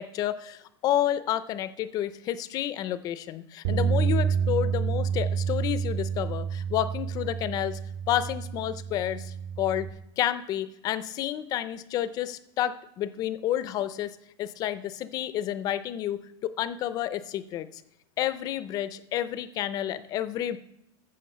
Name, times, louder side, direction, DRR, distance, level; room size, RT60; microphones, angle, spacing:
voice 1, 0.0-7.8 8.1-9.9 10.2-17.8 18.2-20.6, left 12 dB, 25° left, 14 dB, 0.5 m, -30 dB
sound 1, 3.6-9.9, right 7 dB, 65° right, 2.0 m, -29 dB
14.0 x 5.3 x 6.7 m, 0.80 s
supercardioid pair, 175°, 15 cm